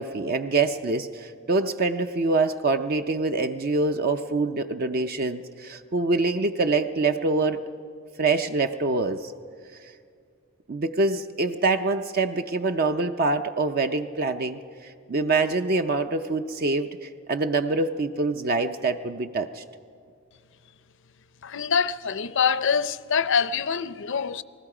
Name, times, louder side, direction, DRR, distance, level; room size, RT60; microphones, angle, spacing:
voice 1, 0.0-7.6 8.2-9.3 10.7-19.6, right 3 dB, 45° right, 0.6 m, -25 dB
voice 2, 21.4-24.4, left 6 dB, 60° left, 0.6 m, -25 dB
28.5 x 19.5 x 4.9 m
head